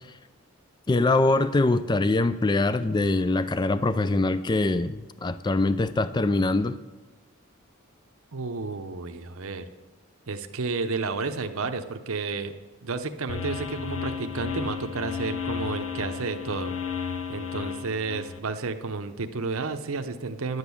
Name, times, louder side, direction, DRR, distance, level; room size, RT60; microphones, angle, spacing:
voice 1, 0.9-6.8, left 2 dB, 20° left, 13 dB, 0.3 m, -23 dB
voice 2, 8.3-9.6 10.3-12.5 12.8-20.6, right 4 dB, 70° right, 7 dB, 0.8 m, -31 dB
sound 1, 13.3-18.4, left 6 dB, 80° left, 0.8 m, -33 dB
11.0 x 8.1 x 7.0 m, 1.2 s
head